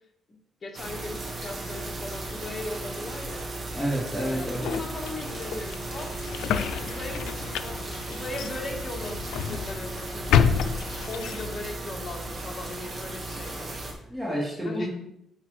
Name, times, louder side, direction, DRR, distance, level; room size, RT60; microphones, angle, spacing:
voice 1, 0.6-3.5 4.1-13.9 14.6-14.9, left 2 dB, 35° left, 1 dB, 1.3 m, -38 dB
sound 1, 0.7-13.9, right 2 dB, 45° right, 1.4 m, -36 dB
voice 2, 3.7-4.7 14.1-14.9, equal, 15° right, -5 dB, 2.0 m, -29 dB
sound 2, 4.2-11.7, left 7 dB, 85° left, 0.3 m, -29 dB
9.5 x 3.3 x 3.2 m, 0.77 s
cardioid pair, 90°, 0 cm